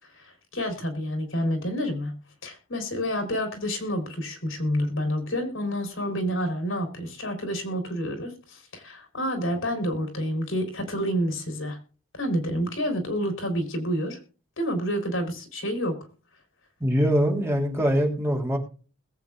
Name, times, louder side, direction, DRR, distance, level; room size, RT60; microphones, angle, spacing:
voice 1, 0.0-2.1 2.4-11.8 12.1-14.2 14.6-16.0, equal, 75° left, 5 dB, 3.7 m, -29 dB
voice 2, 16.8-18.6, equal, 15° right, 1 dB, 3.0 m, -23 dB
21.0 x 8.3 x 2.5 m, 0.36 s
head